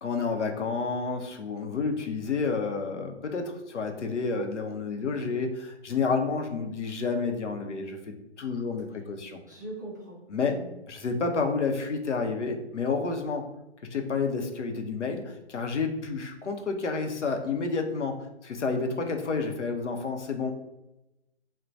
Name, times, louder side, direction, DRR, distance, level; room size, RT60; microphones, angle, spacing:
voice 1, 0.0-9.4 10.3-10.6 10.9-13.4 13.9-18.2 18.4-20.5, left 4 dB, 90° left, 5 dB, 0.7 m, -30 dB
voice 2, 9.4-10.7, right 1 dB, 15° right, -7 dB, 0.4 m, -42 dB
4.3 x 2.2 x 2.6 m, 0.92 s
hypercardioid pair, 150°, 34 cm